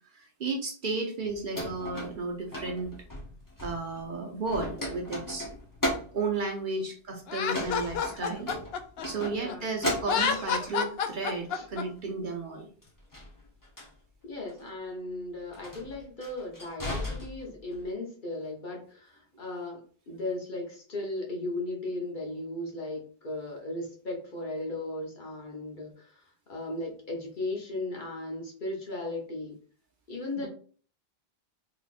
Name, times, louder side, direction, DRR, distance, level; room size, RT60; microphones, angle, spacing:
voice 1, 0.1-2.9 3.6-5.5 6.1-8.5 9.0-12.7 30.4-30.5, right 3 dB, 55° right, 1 dB, 0.8 m, -33 dB
sound 1, 1.3-4.1 4.4-6.3 7.5-9.5 9.8-10.7 12.8-13.9 14.5-14.7 15.5-17.8, left 1 dB, 20° left, 0.8 m, -36 dB
Laughter, 7.3-9.5 10.0-11.8, left 6 dB, 70° left, 0.8 m, -29 dB
voice 2, 9.2-9.8 11.5-11.6 14.2-29.6 30.1-30.5, left 2 dB, 50° left, -1 dB, 1.1 m, -36 dB
3.9 x 3.1 x 2.5 m, 0.43 s
omnidirectional pair, 1.1 m